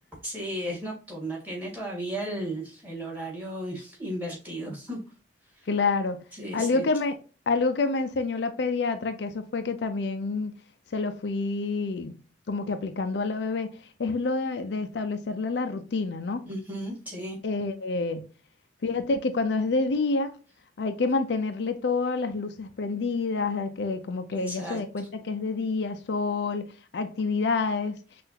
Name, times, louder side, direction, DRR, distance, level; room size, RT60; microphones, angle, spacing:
voice 1, 0.2-5.0 6.3-6.8 16.4-17.4 24.3-24.8, right 1 dB, 10° right, 1.9 m, -34 dB
voice 2, 5.7-6.2 6.5-7.1 7.5-10.5 10.9-12.2 12.5-13.7 14.0-16.5 17.4-18.2 18.8-20.4 20.8-28.0, left 3 dB, 65° left, 0.5 m, -28 dB
5.6 x 2.5 x 2.8 m
head